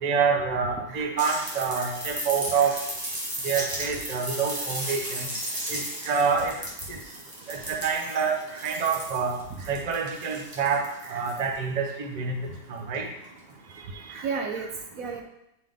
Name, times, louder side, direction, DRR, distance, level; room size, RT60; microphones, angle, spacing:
voice 1, 0.0-2.7 3.4-5.3 5.7-6.5 6.9-7.0 7.5-8.4 8.6-9.3 9.7-10.8 11.1-13.1, right 6 dB, 40° right, 1 dB, 0.6 m, -27 dB
sound 1, 1.2-11.6 12.9-13.0, right 1 dB, 15° right, 1.0 m, -35 dB
voice 2, 13.7-15.2, right 5 dB, 65° right, 3 dB, 1.0 m, -36 dB
9.2 x 3.7 x 3.6 m, 0.82 s
omnidirectional pair, 1.9 m